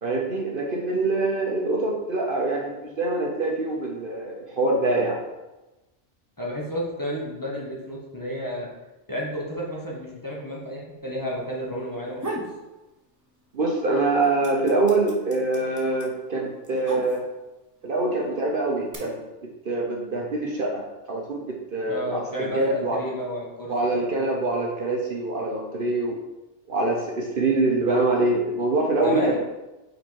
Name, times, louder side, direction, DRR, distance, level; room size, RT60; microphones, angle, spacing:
voice 1, 0.0-5.2 13.5-17.2 17.8-19.2 19.6-20.8 21.1-22.2 22.6-23.0 23.7-26.2 26.7-29.4, right 2 dB, 50° right, 0 dB, 1.0 m, -24 dB
voice 2, 6.4-8.7 9.1-12.5 21.9-24.1 29.0-29.4, equal, 20° left, -5 dB, 1.2 m, -31 dB
sound 1, 11.9-12.6 13.0-13.7 13.9-17.6 18.3-18.9, right 1 dB, 20° right, 0.8 m, -36 dB
5.4 x 4.3 x 4.6 m, 1.1 s
omnidirectional pair, 1.2 m